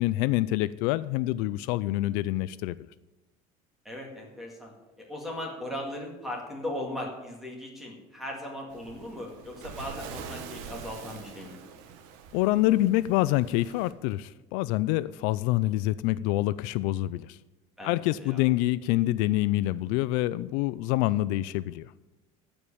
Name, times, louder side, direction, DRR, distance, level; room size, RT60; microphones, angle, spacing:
voice 1, 0.0-2.9 12.3-17.4 17.8-21.9, left 16 dB, 70° left, 17 dB, 0.4 m, -26 dB
voice 2, 3.8-11.6 17.8-18.4, left 1 dB, ahead, -1 dB, 2.1 m, -38 dB
Waves surf, 8.7-13.9, right 6 dB, 75° right, 1.4 m, -44 dB
14.0 x 5.3 x 8.6 m, 1.1 s
cardioid pair, 165°, 14 cm